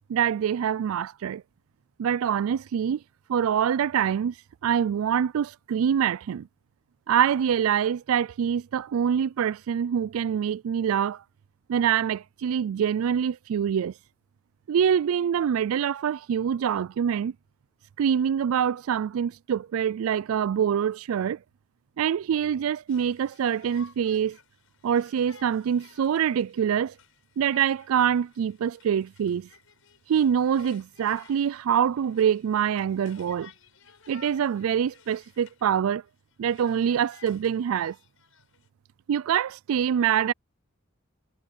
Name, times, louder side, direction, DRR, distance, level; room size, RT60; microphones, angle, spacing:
voice 1, 0.1-1.4 2.0-3.0 3.3-4.3 4.6-6.5 7.1-11.2 11.7-13.9 14.7-17.3 18.0-21.4 22.0-24.4 24.8-26.9 27.4-29.5 30.1-33.5 34.1-36.0 36.4-38.0 39.1-40.3, right 8 dB, 85° right, 0.3 m, -25 dB
Conversation, 22.9-35.7 36.0-38.7, left 7 dB, 85° left, 5.3 m, -56 dB
head